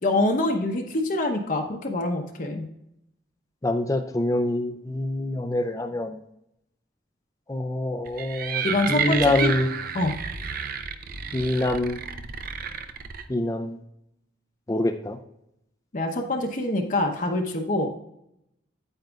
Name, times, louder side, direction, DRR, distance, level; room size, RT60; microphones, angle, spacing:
voice 1, 0.0-2.7 8.6-9.5 9.9-10.1 15.9-18.0, left 2 dB, 40° left, 3 dB, 0.8 m, -25 dB
voice 2, 3.6-6.2 7.5-9.7 11.3-12.0 13.3-13.8 14.7-15.2, left 1 dB, 15° left, 6 dB, 0.4 m, -25 dB
sound 1, 8.1-13.2, right 6 dB, 50° right, 0.6 m, -31 dB
9.1 x 8.9 x 2.3 m, 0.81 s
head